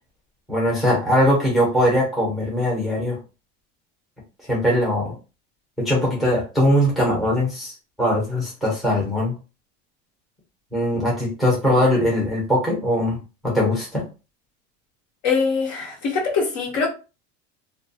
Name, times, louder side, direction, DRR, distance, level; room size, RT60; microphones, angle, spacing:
voice 1, 0.5-3.2 4.5-5.1 5.8-9.3 10.7-13.2 13.4-14.0, left 1 dB, ahead, -4 dB, 0.7 m, -21 dB
voice 2, 15.2-16.9, left 5 dB, 50° left, 0 dB, 1.0 m, -23 dB
2.2 x 2.2 x 2.6 m, 0.31 s
supercardioid pair, 160°, 32 cm